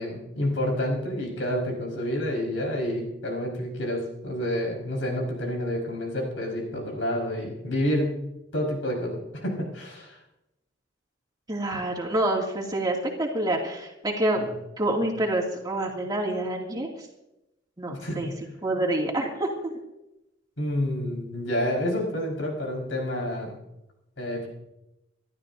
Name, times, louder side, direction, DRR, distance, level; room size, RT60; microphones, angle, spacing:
voice 1, 0.0-8.2 8.5-10.2 14.4-14.5 17.9-18.4 20.6-23.6 24.2-24.5, left 1 dB, 80° left, 0 dB, 5.0 m, -29 dB
voice 2, 11.5-14.4 14.8-16.9 17.8-18.3 18.6-19.7, right 1 dB, 20° right, -1 dB, 2.5 m, -27 dB
27.0 x 12.5 x 2.7 m, 0.90 s
head